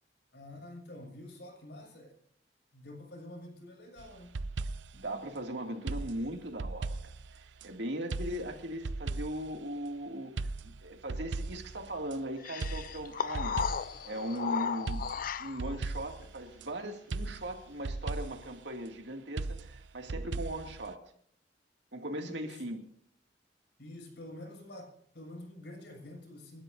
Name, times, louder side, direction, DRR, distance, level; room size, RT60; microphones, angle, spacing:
voice 1, 0.3-2.2 2.7-4.3 22.1-22.8 23.8-26.6, left 1 dB, 65° left, 2 dB, 6.7 m, -48 dB
sound 1, 4.0-5.1 5.9-7.7 8.1-9.6 10.4-12.2 12.6-14.1 14.9-16.7 17.1-18.5 19.4-20.9, right 3 dB, 85° right, 0.6 m, -38 dB
voice 2, 4.9-13.6 14.0-15.1 15.4-21.0 21.9-22.8, right 1 dB, 70° right, 4 dB, 2.5 m, -39 dB
sound 2, 12.4-15.8, left 6 dB, 50° left, 0.5 m, -35 dB
29.0 x 12.5 x 2.7 m, 0.67 s
head